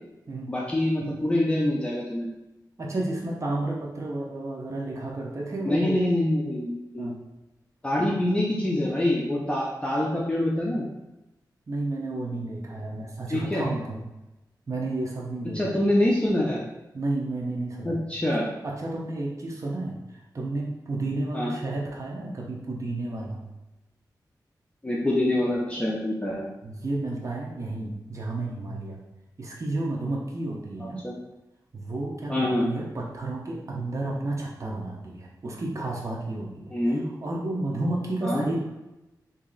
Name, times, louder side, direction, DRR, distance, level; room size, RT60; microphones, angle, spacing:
voice 1, 0.5-2.3 5.6-7.1 7.8-10.8 13.3-13.6 15.5-16.6 17.8-18.5 21.3-21.5 24.8-26.5 31.0-31.2 32.3-32.7 36.7-37.0 38.2-38.4, left 1 dB, 15° left, -4 dB, 0.6 m, -25 dB
voice 2, 2.8-6.1 7.0-7.2 11.7-14.0 14.7-15.9 16.9-18.0 18.6-23.4 26.6-29.0 29.4-31.0 31.7-38.6, right 2 dB, 45° right, -2 dB, 0.7 m, -32 dB
3.0 x 2.7 x 3.9 m, 0.97 s
wide cardioid pair, 90°, 7 cm